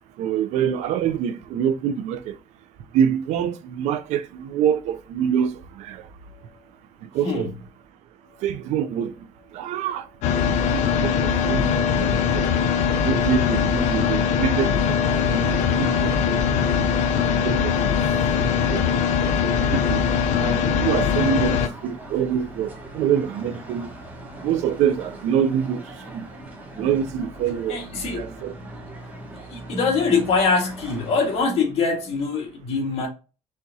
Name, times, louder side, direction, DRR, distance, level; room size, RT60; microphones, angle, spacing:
voice 1, 0.2-2.3 2.9-5.5 5.8-6.0 7.1-7.5 8.4-9.1 9.5-10.0 10.7-12.5 13.0-14.9 15.3-16.1 17.4-17.7 18.4-18.8 19.6-20.0 20.4-23.9 24.4-25.8 26.1-26.3 26.8-27.8 28.1-28.5, right 8 dB, 90° right, 0.5 m, -25 dB
sound 1, 10.2-21.7, left 7 dB, 90° left, 0.6 m, -21 dB
sound 2, 15.0-31.4, right 1 dB, 15° right, 1.3 m, -40 dB
voice 2, 27.7-28.3 29.3-33.1, left 4 dB, 65° left, 1.7 m, -23 dB
4.3 x 3.5 x 2.7 m
cardioid pair, 140°, 12 cm